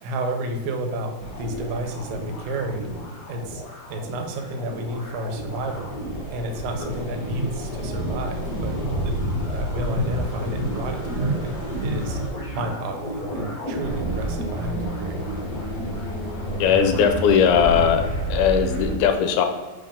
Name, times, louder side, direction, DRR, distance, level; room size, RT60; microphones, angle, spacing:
voice 1, 0.0-3.6 3.9-6.0 6.3-8.8 9.0-9.2 9.5-11.6 11.8-15.2, right 1 dB, 80° right, 4 dB, 2.7 m, -31 dB
sound 1, 1.2-18.9, right 1 dB, 45° left, 1.4 m, -29 dB
voice 2, 16.6-18.0 18.3-19.5, left 7 dB, 80° left, 6 dB, 2.5 m, -19 dB
5.8 x 3.4 x 5.2 m, 1.3 s
omnidirectional pair, 4.5 m